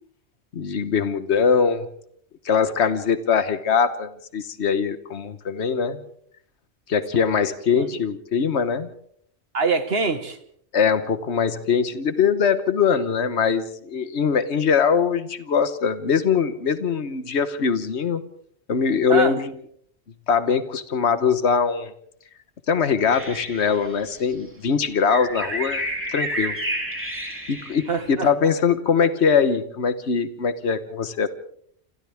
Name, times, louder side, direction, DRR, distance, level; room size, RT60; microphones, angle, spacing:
voice 1, 0.5-1.9 2.4-6.0 6.9-8.9 10.7-18.2 18.7-19.5 20.3-21.9 22.7-25.8 26.1-26.6 27.5-31.3, left 6 dB, 70° left, 11 dB, 1.5 m, -22 dB
voice 2, 9.5-10.4 19.1-19.3 27.9-28.3, right 4 dB, 60° right, 9 dB, 1.9 m, -24 dB
sound 1, 23.1-24.3 25.1-28.1, right 1 dB, 10° right, 4.4 m, -30 dB
28.0 x 27.0 x 3.6 m, 0.65 s
omnidirectional pair, 1.2 m